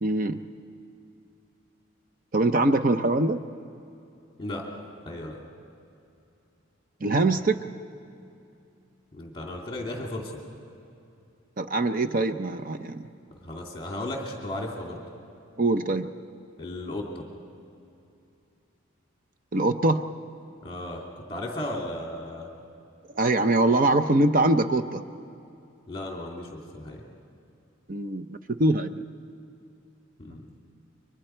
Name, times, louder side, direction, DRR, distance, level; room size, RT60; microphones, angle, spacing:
voice 1, 0.0-0.4 2.3-3.4 7.0-7.6 11.6-13.0 15.6-16.1 19.5-20.0 23.2-25.0 27.9-28.9, right 2 dB, 40° right, 9 dB, 0.6 m, -23 dB
voice 2, 5.0-5.4 9.1-10.4 13.4-15.0 16.6-17.2 20.6-21.0 21.3-22.5 25.9-27.0 30.2-30.4, left 1 dB, 25° left, 0 dB, 2.4 m, -35 dB
30.0 x 23.5 x 4.5 m, 2.7 s
head